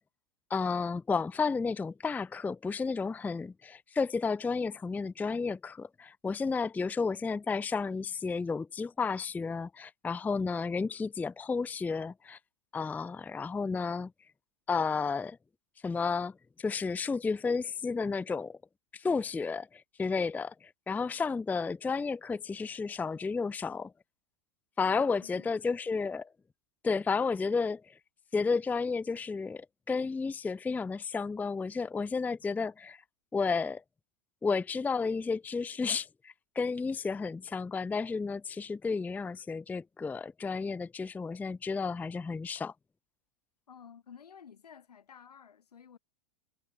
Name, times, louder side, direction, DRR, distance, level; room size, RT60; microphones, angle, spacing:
voice 1, 0.5-12.4 12.7-14.1 14.7-15.4 15.8-18.6 18.9-23.9 24.8-26.3 26.8-27.9 28.3-33.0 33.3-33.8 34.4-42.7, left 4 dB, 10° left, 0.5 m, -32 dB
voice 2, 24.8-25.5 43.7-46.0, left 7 dB, 80° left, 5.9 m, -53 dB
hypercardioid pair, 100°, 20 cm